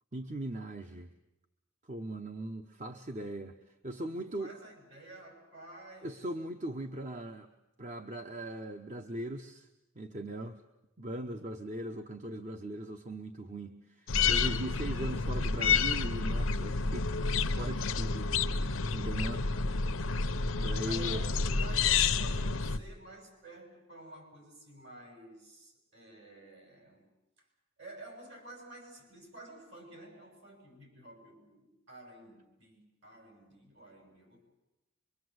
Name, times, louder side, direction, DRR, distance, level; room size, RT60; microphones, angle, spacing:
voice 1, 0.1-1.1 1.9-4.5 6.0-7.5 7.8-9.7 10.0-10.6 11.0-18.3 18.9-19.4 20.6-21.2, right 1 dB, 35° right, 6 dB, 1.0 m, -39 dB
voice 2, 4.1-6.2 19.2-20.1 20.8-27.1 27.8-34.4, right 2 dB, 60° right, 3 dB, 7.3 m, -51 dB
sound 1, 14.1-22.8, left 5 dB, 85° left, 0.9 m, -29 dB
24.5 x 23.5 x 7.9 m, 0.94 s
head